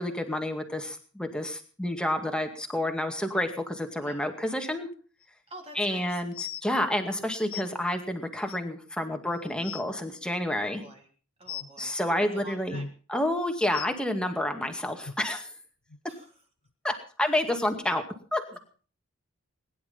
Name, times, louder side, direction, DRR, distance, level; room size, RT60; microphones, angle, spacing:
voice 1, 0.0-4.9 5.7-10.8 11.8-12.8 13.1-15.5 16.8-18.0 18.3-18.6, left 1 dB, 5° left, 4 dB, 2.2 m, -29 dB
sound 1, 5.2-5.3 6.3-6.6 7.5-7.6 8.5-8.6 9.2-9.3 9.5-9.8 11.5-11.7 12.7-12.9 13.7-13.9 15.0-15.1 15.9-16.0 16.7-16.8, left 7 dB, 75° left, 0.9 m, -37 dB
voice 2, 5.5-6.2 10.6-11.0 11.4-12.9 16.1-16.3 18.5-18.6, right 1 dB, 30° right, 2 dB, 3.3 m, -47 dB
21.0 x 11.0 x 5.7 m, 0.41 s
head